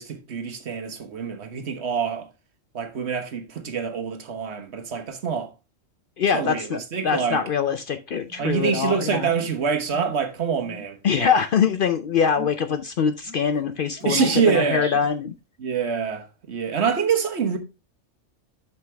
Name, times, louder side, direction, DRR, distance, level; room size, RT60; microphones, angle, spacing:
voice 1, 0.0-2.3 2.7-5.5 6.3-7.4 8.4-11.3 14.0-14.9 15.6-17.6, right 6 dB, 65° right, 1.3 m, -25 dB
voice 2, 6.2-9.3 11.0-15.3, left 7 dB, 60° left, 0.6 m, -23 dB
sound 1, 8.2-8.8 9.3-9.5 9.9-10.2 10.5-10.9 11.5-11.9 12.3-12.5 13.2-13.6 14.0-15.2, left 1 dB, 25° right, 4.2 m, -38 dB
8.0 x 5.9 x 3.2 m
omnidirectional pair, 1.3 m